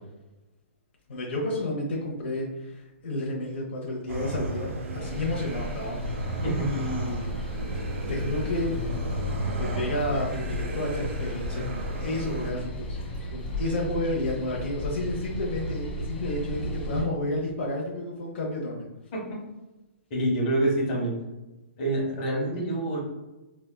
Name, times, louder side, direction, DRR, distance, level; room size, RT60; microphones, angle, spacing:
voice 1, 1.1-6.4 6.7-7.5 8.1-8.7 9.5-13.0 13.3-18.8, left 1 dB, 60° left, -3 dB, 0.8 m, -31 dB
sound 1, 4.1-12.5, right 1 dB, 90° right, 0.6 m, -34 dB
sound 2, 5.0-17.0, equal, 10° left, 0.6 m, -34 dB
voice 2, 20.1-21.1 21.8-23.0, right 1 dB, 30° left, -4 dB, 1.1 m, -26 dB
4.1 x 2.3 x 2.2 m, 1.0 s
hypercardioid pair, 165°, 7 cm